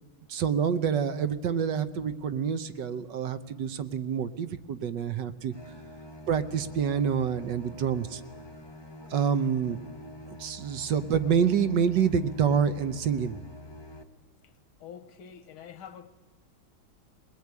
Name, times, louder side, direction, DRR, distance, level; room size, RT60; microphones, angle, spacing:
voice 1, 0.3-5.5 6.3-8.2 9.1-9.8 10.3-13.4, right 7 dB, 65° right, 1.5 m, -27 dB
sound 1, 5.5-14.0, left 1 dB, 20° left, 0.8 m, -46 dB
voice 2, 14.4-16.1, left 8 dB, 80° left, 2.1 m, -47 dB
20.5 x 20.0 x 9.5 m
omnidirectional pair, 2.3 m